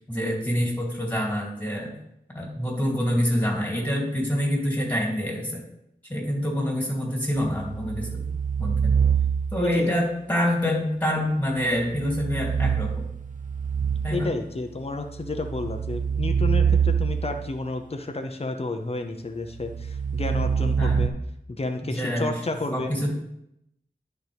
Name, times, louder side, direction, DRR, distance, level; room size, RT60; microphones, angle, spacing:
voice 1, 0.0-1.9 2.3-5.6 6.1-8.2 8.6-8.9 9.5-13.1 14.0-14.3 20.8-21.0 21.8-22.4 22.7-23.1, equal, 10° left, -3 dB, 2.8 m, -26 dB
sound 1, 7.4-9.7 11.8-14.4 15.1-17.5 19.6-21.1, right 7 dB, 50° right, 0.7 m, -25 dB
voice 2, 9.6-9.9 14.1-21.1 21.5-22.9, left 2 dB, 40° left, 5 dB, 0.7 m, -31 dB
10.5 x 4.5 x 3.5 m, 0.78 s
wide cardioid pair, 50°, 17 cm